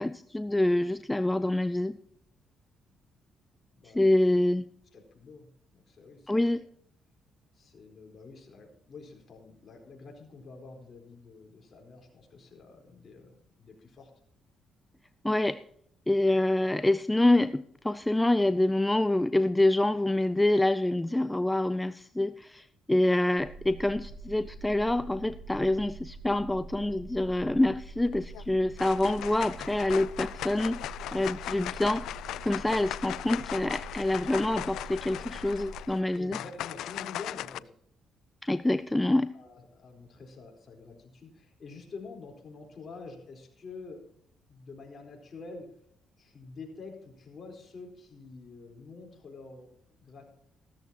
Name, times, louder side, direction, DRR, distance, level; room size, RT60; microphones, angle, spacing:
voice 1, 0.0-2.0 3.9-4.7 6.3-6.6 15.2-15.6 16.1-30.8 31.1-32.1 32.4-36.4 38.4-39.4, left 1 dB, 10° left, 13 dB, 0.4 m, -26 dB
voice 2, 3.7-4.2 4.9-6.6 7.5-14.1 36.1-37.7 39.3-44.1 44.5-45.8 46.2-50.3, left 4 dB, 45° left, 2 dB, 4.2 m, -47 dB
sound 1, 23.4-35.8, right 3 dB, 90° right, 4.7 m, -45 dB
sound 2, 28.1-28.4 28.8-37.6, left 13 dB, 85° left, 0.3 m, -38 dB
15.0 x 13.5 x 2.9 m, 0.70 s
cardioid pair, 90°, 0 cm